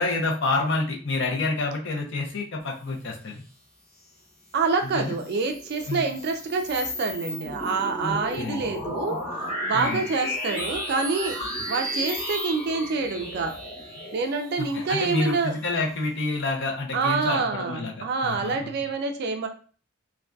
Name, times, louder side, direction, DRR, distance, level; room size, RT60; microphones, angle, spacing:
voice 1, 0.0-3.4 4.9-5.1 5.9-6.0 8.0-8.6 9.7-10.0 14.6-18.7, left 3 dB, 55° left, 1 dB, 0.6 m, -28 dB
voice 2, 4.5-11.4 11.7-13.6 14.1-15.5 16.9-19.5, right 4 dB, 50° right, 6 dB, 0.3 m, -27 dB
sound 1, 5.0-15.9, equal, 30° left, 0.9 m, -34 dB
2.5 x 2.2 x 2.2 m, 0.40 s
head